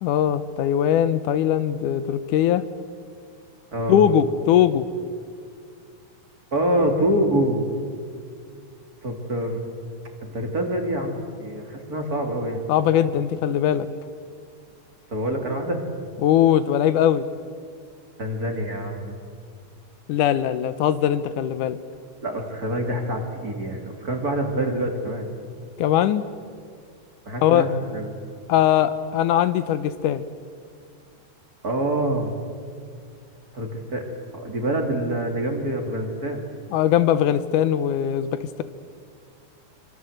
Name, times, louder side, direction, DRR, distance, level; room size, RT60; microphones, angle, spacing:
voice 1, 0.0-2.6 3.9-4.8 12.7-13.9 16.2-17.3 20.1-21.8 25.8-26.2 27.4-27.7 28.5-30.2 36.7-38.6, left 10 dB, 75° left, 13 dB, 2.2 m, -20 dB
voice 2, 3.7-4.1 6.5-7.7 9.0-9.6 10.2-12.6 15.1-15.8 18.2-19.2 22.2-25.3 27.3-28.1 31.6-32.4 33.5-34.1 34.3-36.4, right 1 dB, 30° right, 3 dB, 2.7 m, -26 dB
25.5 x 25.5 x 7.9 m, 2.2 s
omnidirectional pair, 3.8 m